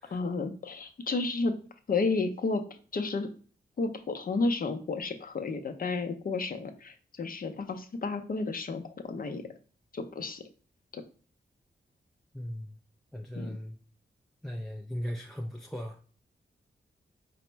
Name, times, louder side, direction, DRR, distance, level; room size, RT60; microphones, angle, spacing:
voice 1, 0.1-1.5 1.9-2.6 2.9-3.3 3.8-9.4 9.9-10.4 10.9-11.0 13.3-13.6, left 3 dB, 50° left, 7 dB, 0.6 m, -32 dB
voice 2, 12.3-12.8 13.1-13.8 14.4-16.0, equal, ahead, 3 dB, 0.4 m, -38 dB
4.2 x 2.0 x 4.3 m, 0.41 s
cardioid pair, 80°, 19 cm